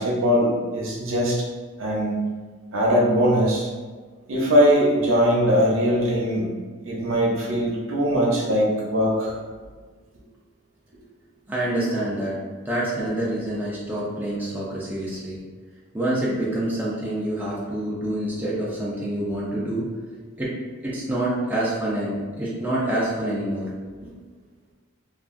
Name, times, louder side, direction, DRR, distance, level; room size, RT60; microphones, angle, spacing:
voice 1, 0.0-1.4 1.8-2.2 2.7-3.7 4.3-6.5 6.9-9.4, equal, 70° right, -3 dB, 0.6 m, -21 dB
voice 2, 11.5-12.4 12.7-15.4 15.9-19.9 20.4-20.5 20.8-23.7 24.0-24.1, right 1 dB, 10° right, -7 dB, 0.4 m, -27 dB
2.8 x 2.4 x 2.5 m, 1.4 s
head